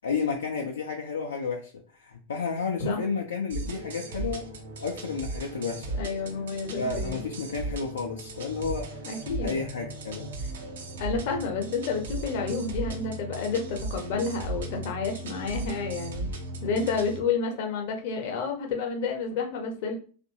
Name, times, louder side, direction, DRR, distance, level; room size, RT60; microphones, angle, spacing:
voice 1, 0.0-4.5 4.8-6.0 6.8-9.1 9.4-10.3 15.9-16.2, left 5 dB, 70° left, 0 dB, 0.5 m, -32 dB
sound 1, 3.5-17.2, right 2 dB, 60° right, 0.6 m, -36 dB
voice 2, 6.0-7.2 9.0-9.6 11.0-16.2 16.6-20.0, left 4 dB, 50° left, 3 dB, 0.9 m, -30 dB
3.0 x 2.5 x 2.7 m, 0.39 s
figure-of-eight pair, 90°, 0 cm